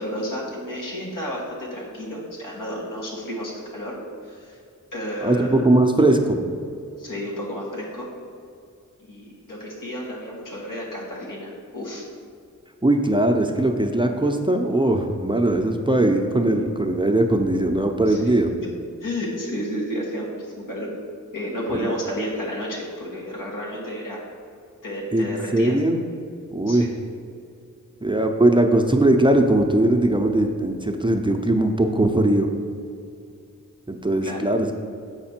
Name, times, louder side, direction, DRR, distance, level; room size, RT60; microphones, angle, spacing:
voice 1, 0.0-4.0 4.2-4.6 4.9-5.6 7.0-8.1 9.0-12.1 18.0-18.2 19.0-20.9 21.3-24.2 24.8-25.8 26.7-26.9 34.2-34.5, equal, 80° left, -3 dB, 1.6 m, -31 dB
voice 2, 5.2-6.5 12.8-18.5 21.7-21.9 25.1-26.0 26.5-26.9 28.0-32.5 33.9-34.7, right 1 dB, 15° right, 3 dB, 0.6 m, -20 dB
7.4 x 4.8 x 4.4 m, 2.4 s
cardioid pair, 55°, 32 cm